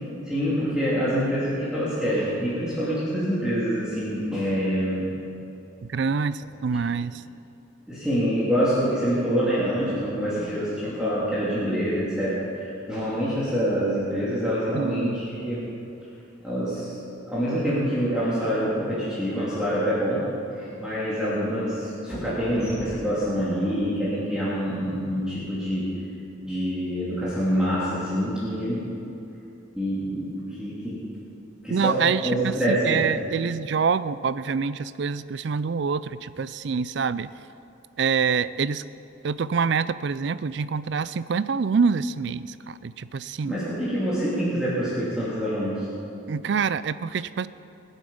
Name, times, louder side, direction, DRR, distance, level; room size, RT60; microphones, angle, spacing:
voice 1, 0.3-5.1 6.7-6.8 7.9-15.6 16.4-17.0 17.3-20.2 20.5-25.9 26.4-28.8 29.7-30.3 30.6-31.0 31.6-33.1 43.4-45.9, equal, 5° right, -10 dB, 2.7 m, -26 dB
voice 2, 5.8-7.2 14.7-15.2 31.7-37.3 38.0-38.8 39.2-43.6 46.3-47.5, right 5 dB, 60° right, 16 dB, 0.4 m, -26 dB
21.0 x 8.1 x 5.4 m, 2.7 s
head